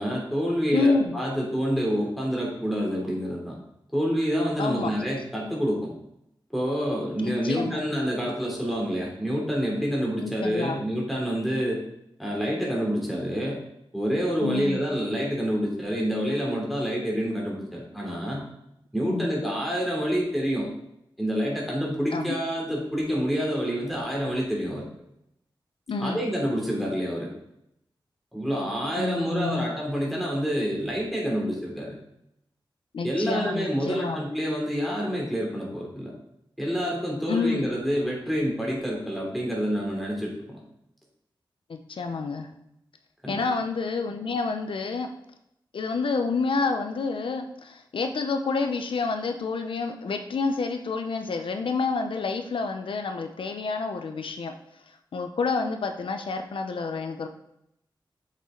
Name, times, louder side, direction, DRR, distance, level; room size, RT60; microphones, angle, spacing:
voice 1, 0.0-3.5 3.9-5.9 6.5-11.8 12.2-13.6 13.9-18.4 18.9-20.7 21.2-24.8 26.0-27.3 28.3-31.9 33.0-36.1 36.6-40.6 43.2-43.4, equal, ahead, -2 dB, 3.2 m, -27 dB
voice 2, 0.7-1.2 4.6-4.9 7.2-7.8 10.2-10.8 14.4-14.8 19.1-19.3 22.1-22.3 25.9-26.2 29.0-29.6 32.9-34.2 37.3-37.6 41.7-42.5 43.3-45.1 45.7-54.5 55.1-57.3, left 4 dB, 85° left, 6 dB, 0.8 m, -28 dB
8.2 x 6.7 x 3.9 m, 0.79 s
wide cardioid pair, 105°, 9 cm